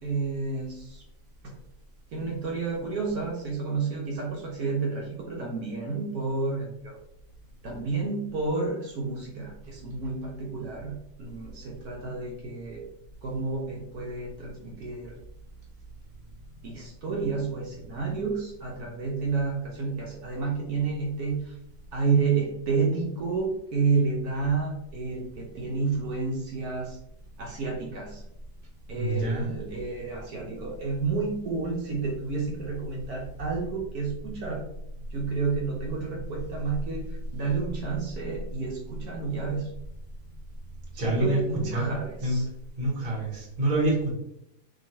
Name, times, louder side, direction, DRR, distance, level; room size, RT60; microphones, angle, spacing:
voice 1, 0.0-1.0 2.1-7.0 7.6-12.8 13.2-15.1 16.6-21.5 21.9-27.0 27.4-28.2 28.9-34.6 35.1-37.1 37.3-39.7 40.9-42.5, right 4 dB, 70° right, -2 dB, 1.1 m, -30 dB
voice 2, 29.0-29.5 41.0-41.4 41.6-41.9 42.2-42.4 42.8-44.1, right 1 dB, 35° right, -4 dB, 0.9 m, -26 dB
2.9 x 2.8 x 2.6 m, 0.79 s
omnidirectional pair, 1.8 m